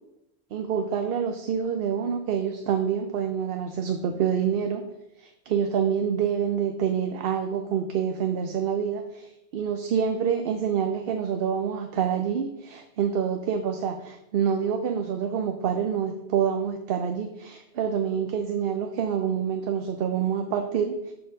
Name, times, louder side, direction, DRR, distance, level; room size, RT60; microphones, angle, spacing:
voice 1, 0.5-4.9 5.2-21.1, right 7 dB, 65° right, 6 dB, 0.8 m, -27 dB
6.0 x 4.9 x 6.1 m, 0.87 s
omnidirectional pair, 1.1 m